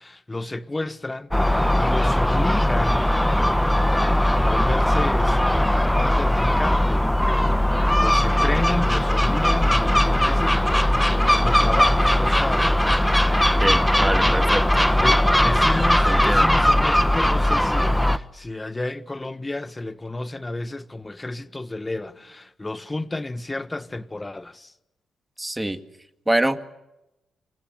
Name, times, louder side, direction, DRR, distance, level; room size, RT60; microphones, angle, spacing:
voice 1, 0.0-3.1 3.7-7.5 8.0-12.8 14.1-14.6 15.0-24.7, left 2 dB, 20° left, 1.5 m, -31 dB
Gull seagull, 1.3-18.2, left 1 dB, 5° left, 1.3 m, -19 dB
voice 2, 13.6-14.8 16.1-16.6 25.4-25.8 26.3-26.6, right 1 dB, 10° right, 2.1 m, -25 dB
28.5 x 25.5 x 7.2 m
supercardioid pair, 60°, 0 cm